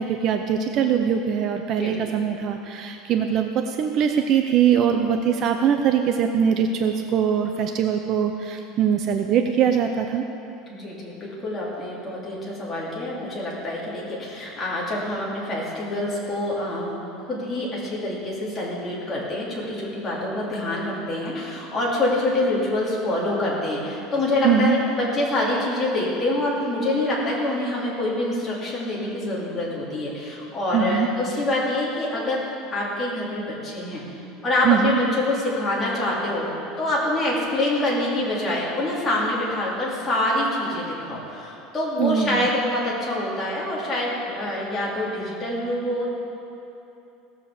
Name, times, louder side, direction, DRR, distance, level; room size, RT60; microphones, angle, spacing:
voice 1, 0.0-10.3 24.4-24.8 30.7-31.1 34.6-35.0 42.0-42.5, right 8 dB, 35° right, 5 dB, 0.5 m, -22 dB
voice 2, 10.7-32.4 32.7-34.0 34.4-46.1, left 1 dB, 15° left, -6 dB, 2.6 m, -26 dB
16.0 x 7.3 x 7.0 m, 2.8 s
cardioid pair, 175°, 0 cm